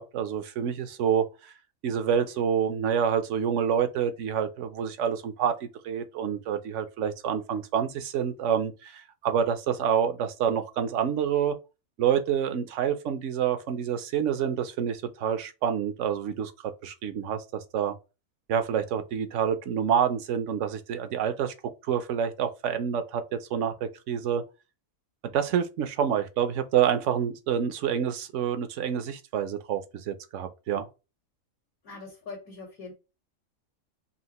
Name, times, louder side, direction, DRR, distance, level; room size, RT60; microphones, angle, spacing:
voice 1, 0.0-1.5 1.8-11.6 12.0-16.5 16.8-17.9 18.5-21.5 21.8-24.4 25.3-30.9, right 8 dB, 65° right, 0.9 m, -27 dB
voice 2, 31.8-32.9, left 4 dB, 85° left, 1.9 m, -42 dB
5.6 x 2.5 x 2.9 m
omnidirectional pair, 1.5 m